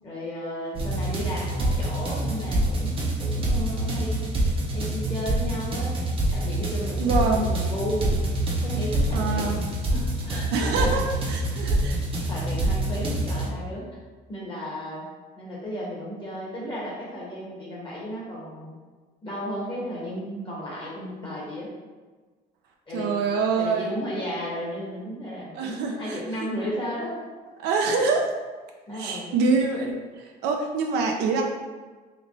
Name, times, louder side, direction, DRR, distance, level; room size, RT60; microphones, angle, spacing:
voice 1, 0.0-4.3 4.7-6.0 6.3-8.1 8.6-9.6 9.9-11.0 12.3-13.8 14.3-15.0 15.4-18.7 19.2-21.7 22.9-23.1 23.6-27.2 28.9-29.3, equal, 30° left, -5 dB, 1.1 m, -34 dB
sound 1, 0.7-13.5, right 1 dB, 35° right, 0.6 m, -26 dB
voice 2, 7.0-7.4 9.1-9.6 10.5-11.0 11.3-12.0 22.9-23.9 25.5-26.5 27.6-28.2 28.9-31.4, right 4 dB, 80° right, 2 dB, 0.4 m, -25 dB
3.3 x 2.9 x 2.6 m, 1.3 s
cardioid pair, 110°, 17 cm